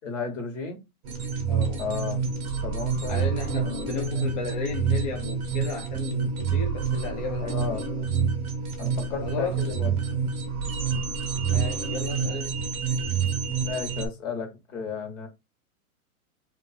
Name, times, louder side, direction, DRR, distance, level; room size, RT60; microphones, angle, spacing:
voice 1, 0.0-0.8 1.8-2.2 2.6-3.2 3.6-4.2 7.4-7.8 8.8-10.0 13.6-15.3, left 5 dB, 55° left, 1.7 m, -34 dB
sound 1, 1.0-14.1, right 6 dB, 20° right, 0.9 m, -28 dB
voice 2, 1.5-1.8 3.1-7.8 9.2-9.8 11.5-12.6, left 3 dB, 30° left, 0.5 m, -34 dB
3.2 x 3.0 x 4.3 m
hypercardioid pair, 160°, 43 cm